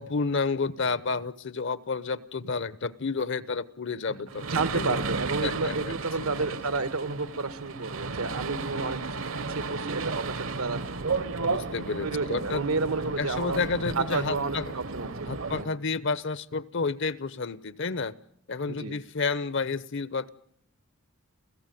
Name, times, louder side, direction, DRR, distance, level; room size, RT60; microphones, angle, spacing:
voice 1, 0.0-4.4 4.7-5.0 5.4-6.3 11.4-12.6 13.2-14.7 15.3-18.1 18.5-20.3, left 4 dB, 55° left, 17 dB, 0.9 m, -30 dB
sound 1, 4.3-15.6, right 4 dB, 65° right, 1.1 m, -33 dB
voice 2, 4.4-9.2 9.5-10.8 12.0-13.6 14.0-15.7 18.7-18.9, right 3 dB, 85° right, 12 dB, 1.5 m, -31 dB
29.0 x 16.0 x 9.3 m, 0.72 s
head